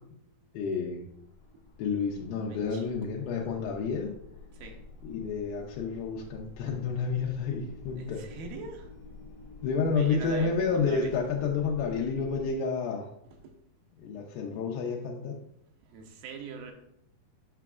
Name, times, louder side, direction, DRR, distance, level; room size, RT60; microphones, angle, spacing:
voice 1, 0.5-1.0 1.8-4.1 5.0-8.3 9.6-13.1 14.0-15.4, left 5 dB, 90° left, -1 dB, 2.5 m, -30 dB
sound 1, 0.8-12.5, left 3 dB, 70° left, 1.5 m, -49 dB
voice 2, 2.5-2.9 4.6-4.8 8.0-8.9 10.0-11.2 15.9-16.7, right 4 dB, 85° right, 3 dB, 2.4 m, -42 dB
7.7 x 5.9 x 2.3 m, 0.75 s
omnidirectional pair, 4.1 m